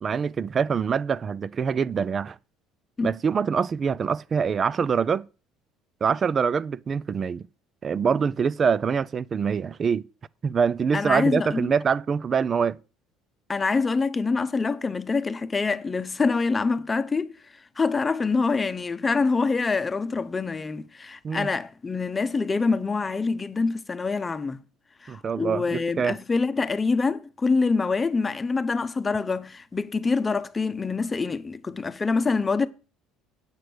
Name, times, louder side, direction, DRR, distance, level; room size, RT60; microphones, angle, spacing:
voice 1, 0.0-2.4 3.0-5.3 6.0-7.5 7.8-10.1 10.4-12.8 21.2-21.5 25.1-26.2, right 6 dB, 35° right, 0.4 m, -25 dB
voice 2, 10.9-11.7 13.5-17.4 17.8-24.6 25.0-32.7, left 4 dB, 20° left, 0.8 m, -25 dB
9.0 x 6.7 x 6.3 m
supercardioid pair, 95°, 0 cm